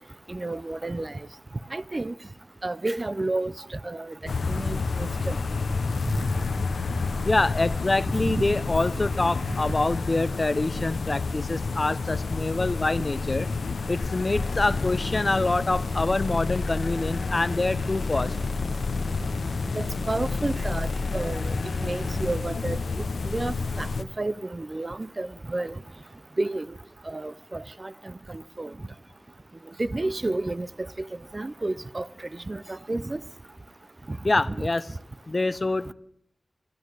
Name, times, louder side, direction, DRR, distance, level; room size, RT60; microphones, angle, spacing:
voice 1, 0.3-1.3 1.7-2.1 2.6-5.4 6.2-6.3 8.2-8.4 9.6-9.7 19.7-21.5 21.8-22.8 23.2-25.7 26.4-26.7 27.1-28.7 29.8-31.1 31.3-32.1 32.5-33.2 34.1-34.2 34.5-34.6, right 2 dB, 40° right, 0.5 m, -31 dB
sound 1, 4.3-24.0, left 4 dB, 85° left, 0.7 m, -30 dB
voice 2, 7.2-13.5 13.9-18.3 34.2-34.9 35.3-35.9, left 2 dB, 45° left, 0.6 m, -26 dB
sound 2, 14.4-22.4, left 3 dB, 65° left, 1.3 m, -34 dB
13.5 x 9.5 x 8.1 m
cardioid pair, 45°, 0 cm